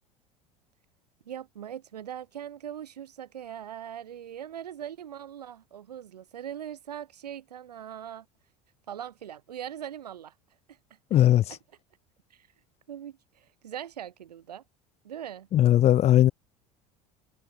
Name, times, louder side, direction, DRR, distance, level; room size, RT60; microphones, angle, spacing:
voice 1, 1.3-8.3 8.9-10.3 10.7-10.8 11.5-11.6 12.3-12.5 12.9-14.6 15.0-15.5, right 10 dB, 80° right, 7.9 m, -40 dB
voice 2, 11.1-11.4 15.5-16.3, left 12 dB, 30° left, 0.4 m, -19 dB
hypercardioid pair, 75°, 20 cm